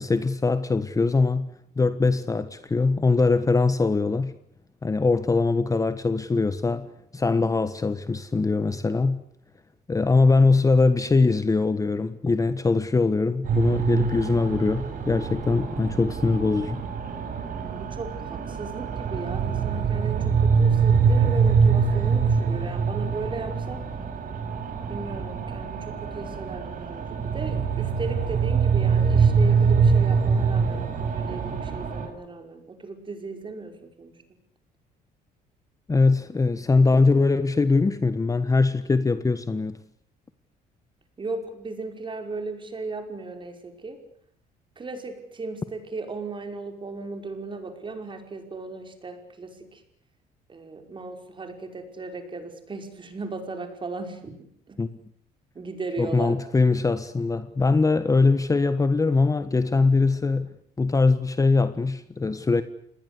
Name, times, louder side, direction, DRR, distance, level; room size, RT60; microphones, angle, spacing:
voice 1, 0.0-1.5 1.8-4.4 4.8-9.2 9.9-16.8 35.9-39.8 54.8-54.9 56.0-62.6, left 3 dB, 20° left, 1.4 m, -22 dB
sound 1, 13.4-32.1, right 5 dB, 55° right, 6.7 m, -24 dB
voice 2, 17.7-23.8 24.9-34.1 41.2-44.0 44.8-49.8 50.5-54.3 54.7-54.8 55.5-56.4, right 3 dB, 30° right, 5.5 m, -36 dB
27.5 x 20.5 x 8.3 m
cardioid pair, 110°, 17 cm